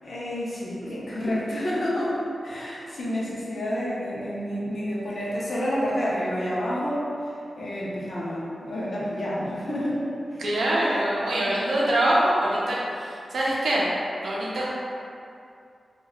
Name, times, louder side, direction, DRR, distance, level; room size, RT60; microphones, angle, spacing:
voice 1, 0.0-2.2 2.4-7.1 7.6-10.0 10.3-10.4, equal, 45° left, -6 dB, 0.5 m, -29 dB
voice 2, 10.4-13.9 14.2-14.7, right 1 dB, 75° right, -6 dB, 0.5 m, -24 dB
2.2 x 2.1 x 3.4 m, 2.5 s
wide cardioid pair, 180°, 0 cm